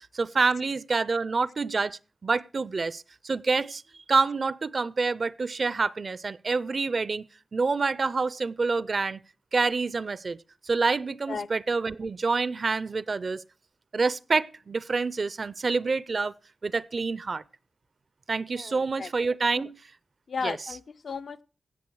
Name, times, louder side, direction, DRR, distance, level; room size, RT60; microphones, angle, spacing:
voice 1, 0.0-3.8 4.1-7.3 7.5-9.2 9.5-10.4 10.6-13.4 13.9-16.3 16.6-17.4 18.3-19.8 20.4-20.8, right 4 dB, 50° right, 0.5 m, -27 dB
voice 2, 18.5-19.1 19.6-19.7 20.3-21.4, left 5 dB, 70° left, 0.5 m, -35 dB
17.0 x 6.6 x 4.6 m
wide cardioid pair, 110°, 0 cm